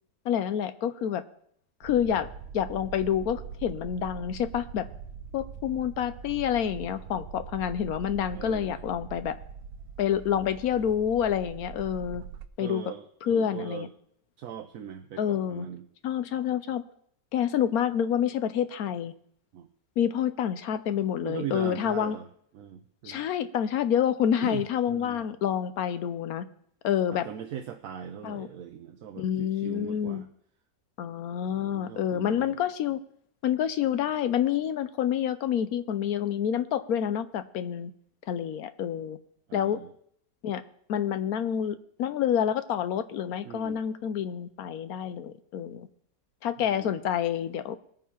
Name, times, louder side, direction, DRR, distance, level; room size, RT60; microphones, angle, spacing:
voice 1, 0.3-1.2 1.8-2.3 2.5-4.9 5.3-9.4 10.0-12.2 12.6-12.8 13.2-13.9 15.2-15.7 16.0-16.8 17.3-19.1 20.0-22.2 23.0-26.5 26.8-27.3 28.2-28.5 29.2-30.2 31.0-33.0 33.4-37.9 38.3-39.2 39.5-39.8 40.4-40.6 40.9-45.9 46.4-47.8, left 9 dB, 70° left, 11 dB, 1.0 m, -28 dB
sound 1, 1.8-12.5, right 7 dB, 90° right, 1.3 m, -42 dB
voice 2, 8.3-8.8 12.6-13.9 14.4-15.9 19.5-19.7 21.2-22.3 22.5-23.2 24.4-25.2 27.1-30.3 31.5-32.6 39.5-39.9 43.4-43.8 46.6-47.0, right 9 dB, 65° right, 7 dB, 0.9 m, -40 dB
20.0 x 9.2 x 2.9 m, 0.67 s
omnidirectional pair, 1.9 m